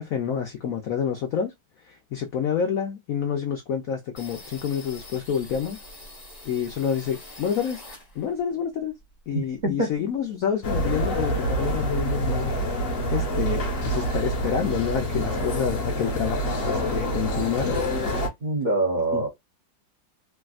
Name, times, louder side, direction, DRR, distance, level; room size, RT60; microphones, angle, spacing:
voice 1, 0.0-1.5 1.8-5.8 6.4-7.8 8.1-8.9 9.3-12.5 13.1-17.8 19.1-19.2, left 8 dB, 80° left, 0.7 m, -28 dB
sound 1, 4.2-8.5 8.8-10.2 10.5-10.6 10.9-11.6, left 1 dB, 20° left, 1.5 m, -45 dB
voice 2, 9.3-9.9 18.4-19.3, right 2 dB, 85° right, 0.4 m, -25 dB
sound 2, 10.6-18.3, equal, 45° left, 1.3 m, -26 dB
3.4 x 2.7 x 2.4 m
omnidirectional pair, 2.2 m